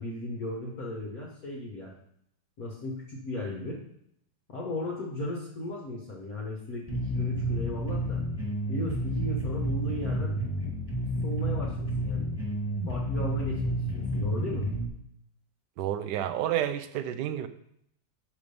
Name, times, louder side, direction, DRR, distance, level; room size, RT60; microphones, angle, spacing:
voice 1, 0.0-1.9 2.6-3.8 4.5-8.2 8.7-10.4 11.2-12.3 12.9-14.7, left 1 dB, 50° left, -3 dB, 1.5 m, -36 dB
sound 1, 6.9-14.9, equal, 5° left, 1.7 m, -30 dB
voice 2, 15.8-17.5, right 11 dB, 75° right, 11 dB, 1.0 m, -30 dB
6.0 x 5.2 x 6.7 m, 0.73 s
omnidirectional pair, 2.3 m